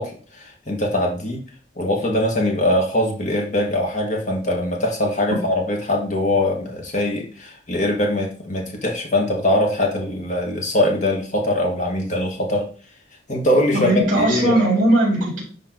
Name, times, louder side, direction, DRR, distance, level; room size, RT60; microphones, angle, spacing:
voice 1, 0.0-1.4 1.8-12.7 13.3-14.6, left 1 dB, 40° left, 1 dB, 1.8 m, -22 dB
voice 2, 13.7-15.4, right 1 dB, 45° right, -3 dB, 4.0 m, -18 dB
10.5 x 3.7 x 3.9 m, 0.41 s
head